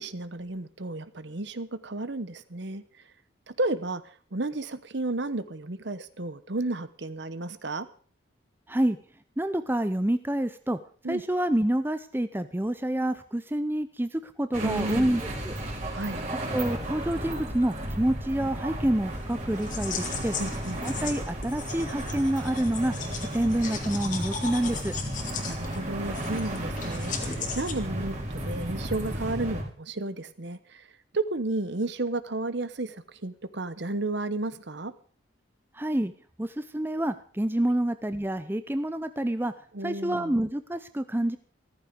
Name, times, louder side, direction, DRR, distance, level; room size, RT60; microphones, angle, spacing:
voice 1, 0.0-2.8 3.5-7.9 11.0-11.2 14.6-15.1 15.9-16.2 20.4-20.8 25.4-34.9 39.7-40.3, right 2 dB, 55° right, 14 dB, 1.0 m, -32 dB
voice 2, 9.4-10.8 11.1-15.5 16.5-20.3 20.8-22.9 23.3-25.0 35.7-36.1 36.4-39.5 39.8-41.4, right 1 dB, 10° right, 11 dB, 0.6 m, -27 dB
sound 1, 14.5-29.6, right 1 dB, 35° right, 4.1 m, -34 dB
sound 2, 19.2-27.7, left 6 dB, 40° left, 2.1 m, -38 dB
14.5 x 14.0 x 5.2 m, 0.43 s
head